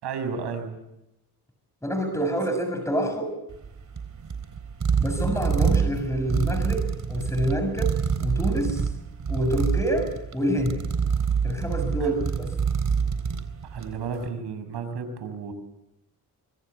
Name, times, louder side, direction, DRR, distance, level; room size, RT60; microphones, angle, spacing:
voice 1, 0.0-0.8 12.0-12.1 13.7-15.5, right 5 dB, 85° right, 8 dB, 6.3 m, -32 dB
voice 2, 1.8-3.3 5.0-8.9 9.3-10.8 11.4-12.5, equal, 5° left, 6 dB, 6.6 m, -27 dB
sound 1, 3.5-14.1, right 6 dB, 50° right, 3.9 m, -26 dB
25.0 x 23.5 x 8.3 m, 0.89 s
cardioid pair, 65°, 40 cm